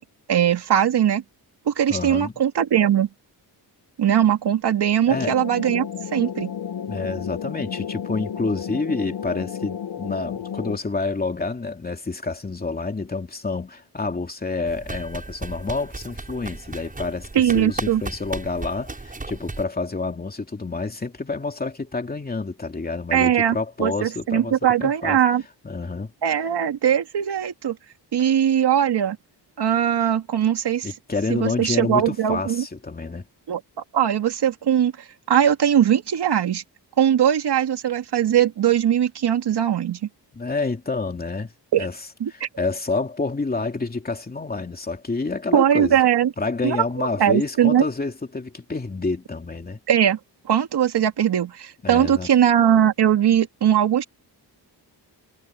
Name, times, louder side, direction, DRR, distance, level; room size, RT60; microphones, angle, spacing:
voice 1, 0.3-1.2 1.7-3.1 4.0-6.5 17.3-18.0 23.1-25.4 26.2-27.8 28.1-29.2 29.6-30.9 31.3-32.6 33.5-33.6 33.9-34.9 35.3-36.6 37.0-40.0 41.7-41.9 42.2-42.5 45.5-46.3 46.6-47.9 49.9-50.2 50.5-54.1, right 9 dB, 70° right, 2.3 m, -20 dB
voice 2, 1.9-2.3 5.1-5.4 6.8-25.2 25.6-26.1 30.8-33.3 40.3-41.5 41.8-42.0 42.3-46.0 46.4-49.8 51.8-52.3, left 3 dB, 20° left, 2.8 m, -28 dB
sound 1, 5.1-10.8, left 8 dB, 75° left, 1.9 m, -32 dB
sound 2, 14.7-19.6, right 3 dB, 20° right, 7.4 m, -35 dB
wide cardioid pair, 160°, 42 cm